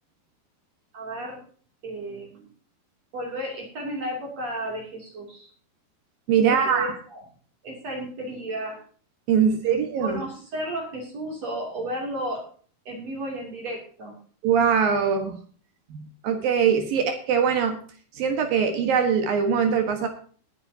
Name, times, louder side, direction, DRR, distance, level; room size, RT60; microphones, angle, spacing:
voice 1, 0.9-1.4 1.8-2.5 3.1-5.5 6.5-7.2 7.6-8.8 9.4-12.4 12.9-14.1, right 1 dB, 45° right, 0 dB, 3.6 m, -33 dB
voice 2, 6.3-7.0 9.3-10.2 14.4-15.4 15.9-17.8 18.2-20.1, right 7 dB, 65° right, 6 dB, 2.9 m, -22 dB
19.5 x 9.7 x 2.8 m, 0.43 s
omnidirectional pair, 4.7 m